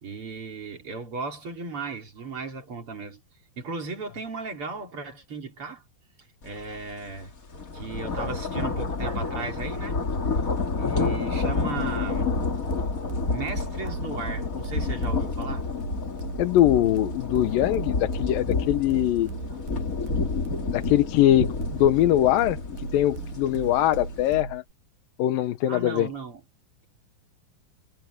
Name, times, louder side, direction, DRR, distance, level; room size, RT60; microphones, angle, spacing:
voice 1, 0.0-3.2 3.6-5.8 6.4-7.3 7.7-10.0 10.7-12.3 13.3-15.7 19.5-19.6 25.7-26.4, right 4 dB, 40° right, 3.8 m, -36 dB
sound 1, 6.6-6.8 7.1-24.4, left 4 dB, 30° left, 2.0 m, -29 dB
voice 2, 10.8-11.1 16.4-19.3 20.7-22.6 22.9-24.6 25.2-26.1, left 13 dB, 80° left, 2.6 m, -22 dB
sound 2, 12.3-24.7, right 7 dB, 70° right, 3.4 m, -38 dB
omnidirectional pair, 4.1 m